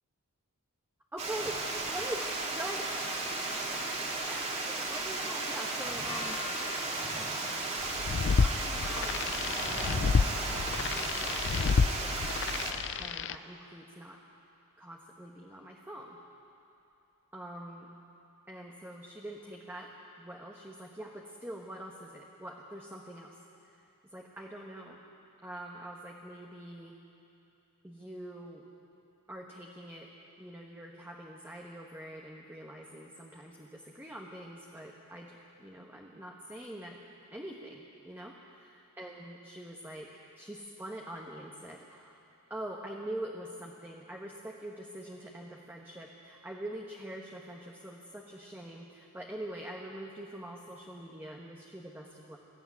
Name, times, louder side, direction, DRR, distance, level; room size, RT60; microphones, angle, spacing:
voice 1, 1.1-1.6 1.9-3.4 4.2-6.4 7.2-12.3 13.0-14.2 14.8-16.2 17.3-17.9 18.5-19.9 20.2-25.0 25.4-27.0 27.8-28.6 29.3-30.1 30.4-37.0 37.3-38.4 39.0-42.2 42.5-52.4, right 1 dB, 10° right, -1 dB, 1.2 m, -44 dB
Water, 1.2-12.7, right 2 dB, 30° right, 2.1 m, -34 dB
sound 1, 6.1-12.0, left 6 dB, 30° left, 2.7 m, -50 dB
sound 2, 7.8-13.4, left 5 dB, 55° left, 0.4 m, -30 dB
21.0 x 14.0 x 9.6 m, 2.8 s
head